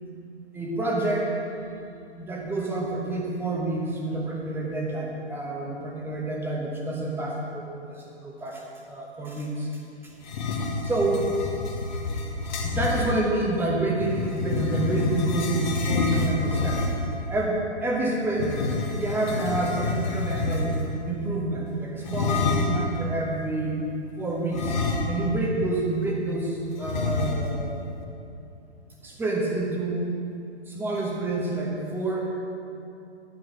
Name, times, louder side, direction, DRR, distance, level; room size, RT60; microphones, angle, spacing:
voice 1, 0.5-1.4 2.2-8.6 8.9-9.7 10.9-11.3 12.6-16.8 17.3-18.5 18.9-20.8 21.0-23.8 24.2-24.8 25.1-27.8 29.0-30.1 30.7-32.2, right 2 dB, 5° right, -1 dB, 1.2 m, -28 dB
sound 1, 10.2-13.1 14.0-17.1 18.3-21.0 22.0-22.9 24.5-25.4 25.7-25.8 26.8-27.7, left 3 dB, 40° left, 1.6 m, -27 dB
12.5 x 9.3 x 5.0 m, 2.6 s
figure-of-eight pair, 120°, 34 cm